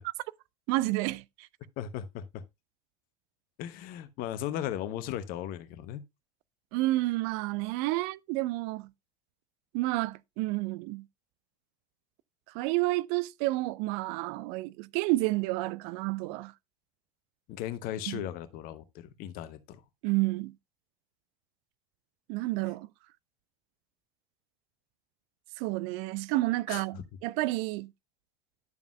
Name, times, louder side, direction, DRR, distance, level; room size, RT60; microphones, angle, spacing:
voice 1, 0.7-1.5 6.7-8.9 9.7-11.0 12.5-16.5 18.1-18.3 20.0-20.5 22.3-22.9 25.6-27.9, right 19 dB, 50° right, 0.4 m, -30 dB
voice 2, 1.8-2.4 3.6-6.0 17.5-19.8 26.7-26.8, left 11 dB, 50° left, 0.9 m, -37 dB
11.0 x 7.1 x 2.2 m
figure-of-eight pair, 70°, 19 cm